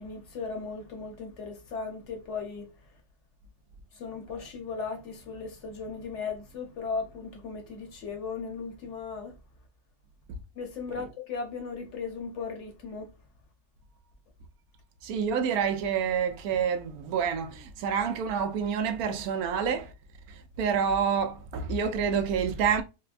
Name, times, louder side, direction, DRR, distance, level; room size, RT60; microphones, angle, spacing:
voice 1, 0.0-2.7 3.9-9.4 10.5-13.1, left 5 dB, 55° left, 1.0 m, -37 dB
voice 2, 15.0-19.9 20.3-22.8, right 7 dB, 75° right, 1.0 m, -28 dB
4.2 x 2.1 x 2.4 m
omnidirectional pair, 1.7 m